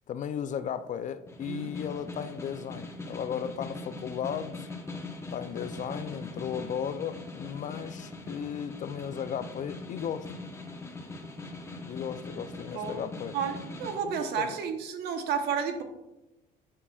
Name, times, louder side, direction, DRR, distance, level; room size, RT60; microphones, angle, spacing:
voice 1, 0.1-4.7 5.3-10.4 11.9-13.4 14.0-14.6, left 8 dB, 50° left, 12 dB, 0.4 m, -35 dB
Snare drum, 1.3-14.0, left 2 dB, 15° left, 1.0 m, -41 dB
voice 2, 13.3-15.8, right 7 dB, 75° right, 6 dB, 1.0 m, -31 dB
9.7 x 5.5 x 2.4 m, 0.96 s
cardioid pair, 110°, 17 cm